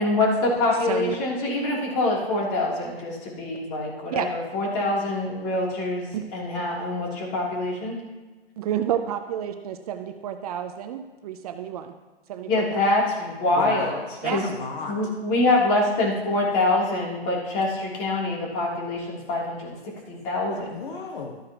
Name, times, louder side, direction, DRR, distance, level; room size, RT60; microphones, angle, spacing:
voice 1, 0.0-8.0 12.5-14.0 14.3-14.4 14.9-20.7, left 2 dB, 35° left, -3 dB, 3.1 m, -25 dB
voice 2, 0.8-1.2 4.1-4.3 6.1-6.2 8.6-12.0 12.3-12.8 13.4-13.6 14.2-14.5, right 10 dB, 40° right, 8 dB, 0.6 m, -30 dB
voice 3, 13.6-13.9 14.2-15.0 20.5-21.4, left 4 dB, 50° left, 2 dB, 1.2 m, -34 dB
13.0 x 9.6 x 3.0 m, 1.2 s
figure-of-eight pair, 125°, 31 cm